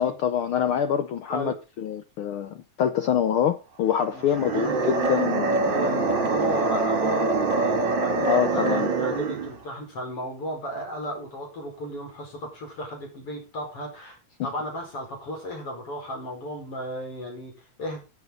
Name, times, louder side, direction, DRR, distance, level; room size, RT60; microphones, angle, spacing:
voice 1, 0.0-5.7 8.2-8.9, left 9 dB, 85° left, 1.2 m, -25 dB
voice 2, 4.1-4.7 5.7-18.0, equal, 50° left, 5.8 m, -35 dB
sound 1, 4.2-9.6, right 3 dB, 45° right, 2.3 m, -24 dB
14.5 x 8.5 x 3.8 m
omnidirectional pair, 3.3 m